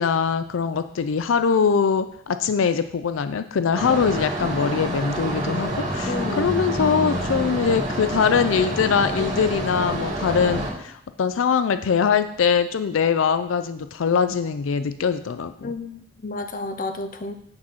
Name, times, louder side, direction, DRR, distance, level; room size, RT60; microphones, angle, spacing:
voice 1, 0.0-15.7, left 6 dB, 90° left, 11 dB, 0.4 m, -22 dB
sound 1, 3.7-10.7, right 1 dB, 35° right, 2.4 m, -27 dB
voice 2, 6.1-6.5 15.6-17.3, left 2 dB, 45° left, 8 dB, 0.6 m, -31 dB
8.7 x 4.1 x 6.1 m, 0.70 s
head